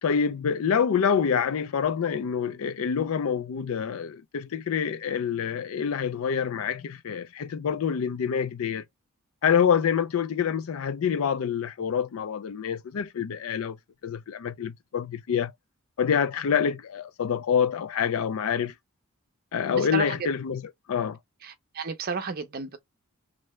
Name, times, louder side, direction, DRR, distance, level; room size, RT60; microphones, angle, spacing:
voice 1, 0.0-8.8 9.4-13.8 14.0-15.5 16.0-18.7 19.5-20.6 20.9-21.2, left 7 dB, 70° left, 0.4 m, -26 dB
voice 2, 19.7-20.2 21.4-22.8, right 5 dB, 45° right, 0.6 m, -32 dB
3.3 x 2.6 x 3.0 m
head